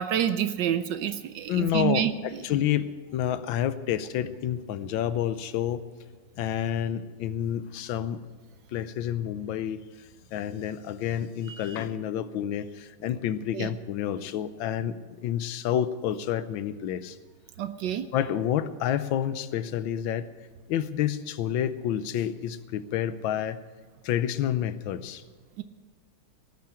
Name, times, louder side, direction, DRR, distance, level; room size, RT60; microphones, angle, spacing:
voice 1, 0.0-2.1 13.5-13.7 17.6-18.1 25.6-25.7, right 10 dB, 70° right, 11 dB, 1.2 m, -27 dB
voice 2, 1.5-5.8 6.4-8.2 8.7-9.8 10.3-17.2 18.1-20.3 20.7-23.6 24.0-25.2, left 10 dB, 75° left, 14 dB, 1.4 m, -29 dB
18.0 x 6.6 x 9.7 m, 1.5 s
omnidirectional pair, 2.2 m